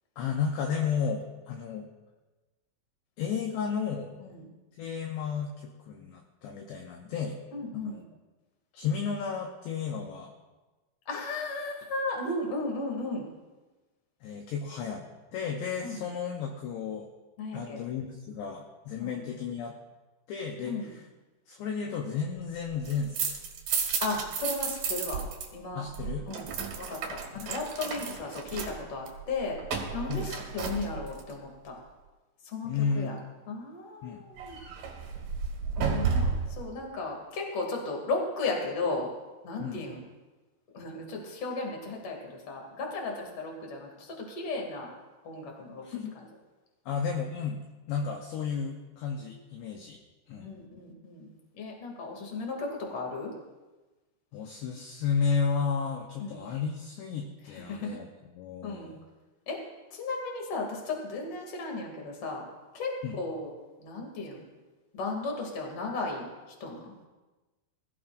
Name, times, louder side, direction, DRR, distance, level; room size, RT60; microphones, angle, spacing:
voice 1, 0.2-1.9 3.2-4.2 4.8-7.4 7.7-8.0 8.7-10.3 14.2-15.1 15.3-17.1 17.5-19.8 20.3-20.8 21.5-23.4 25.8-26.3 27.3-27.5 30.1-30.3 32.6-33.2 34.0-34.2 39.6-39.9 45.8-46.1 46.9-47.6 47.9-50.0 50.3-50.5 54.3-58.1 58.3-59.0 63.0-63.2, left 6 dB, 75° left, 1 dB, 2.8 m, -33 dB
voice 2, 7.5-8.0 11.1-13.3 15.8-16.0 17.4-17.8 19.0-19.2 20.6-20.9 24.0-25.2 25.5-25.8 26.3-26.5 26.8-31.7 32.4-33.2 33.5-34.6 35.8-39.1 39.4-40.0 40.7-44.9 45.2-45.8 46.1-46.3 50.4-51.3 51.6-53.3 56.2-56.5 57.5-58.0 58.6-58.9 59.5-59.6 59.9-62.5 62.7-63.5 63.8-64.4 64.9-66.3 66.6-66.9, left 3 dB, 35° left, 0 dB, 2.8 m, -35 dB
sound 1, 22.7-25.5 25.7-31.3 34.4-36.6, right 5 dB, 60° right, 2.6 m, -33 dB
21.5 x 14.5 x 2.6 m, 1.2 s
omnidirectional pair, 5.7 m